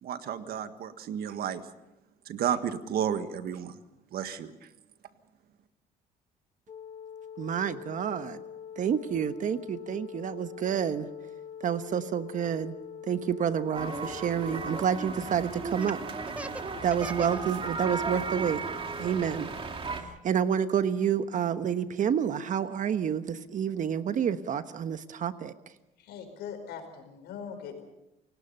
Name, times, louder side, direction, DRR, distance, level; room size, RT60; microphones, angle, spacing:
voice 1, 0.0-1.6 2.2-3.8 4.1-4.5, right 9 dB, 65° right, 10 dB, 1.6 m, -32 dB
sound 1, 6.7-14.8, left 8 dB, 40° left, 1.9 m, -44 dB
voice 2, 7.4-8.4 8.8-11.1 11.6-12.8 13.1-16.0 16.8-18.6 19.0-19.5 19.9-25.5, right 8 dB, 50° right, 11 dB, 1.2 m, -29 dB
sound 2, 13.7-20.0, right 4 dB, 30° right, 2.5 m, -35 dB
Laughter, 15.7-17.4 17.8-18.4 18.8-20.5, right 1 dB, 5° right, 0.9 m, -41 dB
voice 3, 26.0-27.8, left 7 dB, 80° left, 6 dB, 4.9 m, -41 dB
28.5 x 18.0 x 5.6 m, 0.93 s
cardioid pair, 110°, 17 cm